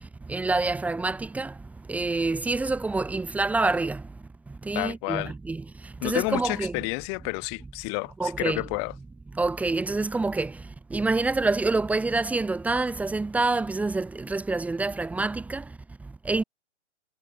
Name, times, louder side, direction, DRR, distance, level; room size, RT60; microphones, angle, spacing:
voice 1, 0.3-1.5 1.9-4.0 4.7-5.6 6.0-6.7 8.2-8.6 9.4-10.5 10.9-15.6 16.3-16.4, right 3 dB, 5° right, 2.9 m, -26 dB
voice 2, 4.7-5.3 6.0-8.9, left 36 dB, 25° left, 2.7 m, -30 dB
figure-of-eight pair, 130°, 36 cm